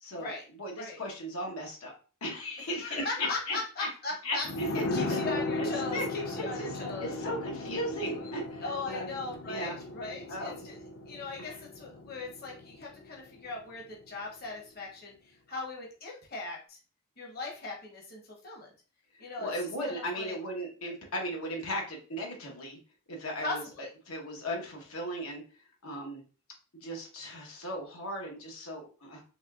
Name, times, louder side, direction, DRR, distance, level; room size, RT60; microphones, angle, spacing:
voice 1, 0.0-0.3 0.6-1.9 2.2-3.9 4.2-4.8 5.1-5.2 5.6-6.1 6.4-6.8 7.0-9.1 9.5-9.8 10.3-10.6 11.4-11.6 19.4-22.8 23.1-23.6 24.1-25.4 25.8-26.2 26.8-29.2, equal, 85° left, -1 dB, 1.1 m, -36 dB
voice 2, 2.7-4.4 4.9-7.1 8.6-10.8 11.1-15.1 15.5-16.8 17.2-18.7 19.2-19.5 19.8-20.3 23.4-23.9, left 3 dB, 45° left, -1 dB, 0.9 m, -38 dB
sound 1, 4.4-13.7 14.0-14.1, left 2 dB, 60° left, 0.6 m, -37 dB
4.2 x 3.2 x 2.3 m, 0.36 s
head